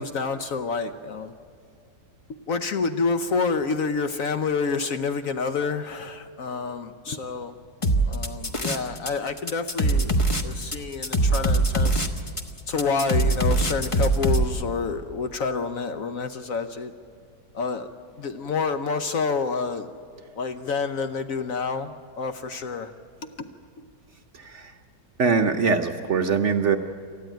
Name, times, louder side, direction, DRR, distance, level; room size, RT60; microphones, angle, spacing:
voice 1, 0.0-1.3 2.5-7.6 8.1-10.1 10.4-12.1 12.7-16.9 17.5-17.9 18.2-19.9 20.4-22.9 23.4-23.5, left 4 dB, 60° left, 9 dB, 1.0 m, -28 dB
sound 1, 7.8-9.1 9.4-14.4, right 2 dB, 25° left, 0.9 m, -22 dB
voice 2, 24.4-24.7 25.2-26.8, right 5 dB, 55° right, 5 dB, 0.9 m, -22 dB
27.5 x 14.0 x 9.2 m, 2.3 s
omnidirectional pair, 1.9 m